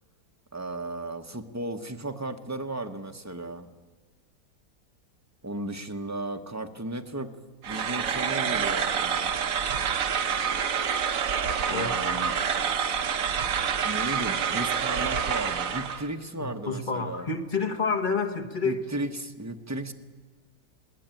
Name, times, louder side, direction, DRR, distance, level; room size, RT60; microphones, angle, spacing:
voice 1, 0.5-3.7 5.4-7.3 7.7-9.3 11.7-12.3 13.8-17.3 18.6-19.9, right 1 dB, 15° right, 7 dB, 0.7 m, -35 dB
sound 1, 7.6-16.1, right 7 dB, 55° right, 1.3 m, -27 dB
voice 2, 16.4-18.8, left 4 dB, 30° left, 4 dB, 1.5 m, -29 dB
20.5 x 18.0 x 9.0 m, 1.3 s
omnidirectional pair, 1.8 m